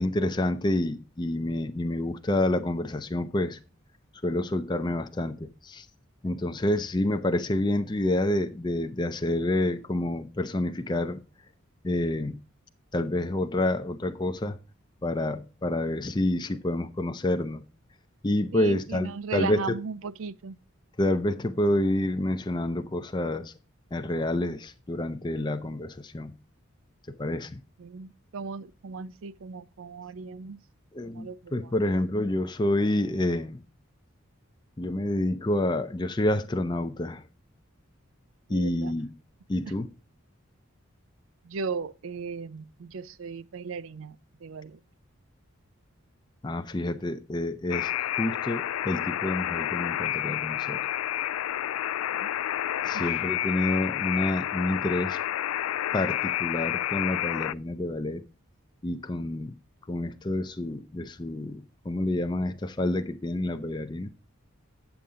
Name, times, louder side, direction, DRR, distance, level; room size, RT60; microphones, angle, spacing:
voice 1, 0.0-3.6 4.2-5.9 6.2-11.2 11.8-12.4 12.9-14.6 15.0-17.6 18.2-19.6 21.0-23.5 23.9-26.3 27.2-27.6 30.9-33.6 34.8-37.2 38.5-39.1 39.5-39.9 46.4-50.8 52.8-55.2 55.9-58.2 58.8-59.5 59.9-64.1, left 1 dB, 20° left, 0.5 m, -28 dB
voice 2, 18.5-20.6 27.8-30.6 31.1-31.8 38.5-38.9 41.4-44.8 52.1-52.3 52.9-53.1, right 5 dB, 75° right, 0.4 m, -37 dB
Alarm, 47.7-57.5, left 12 dB, 85° left, 0.3 m, -30 dB
8.9 x 7.0 x 3.6 m
head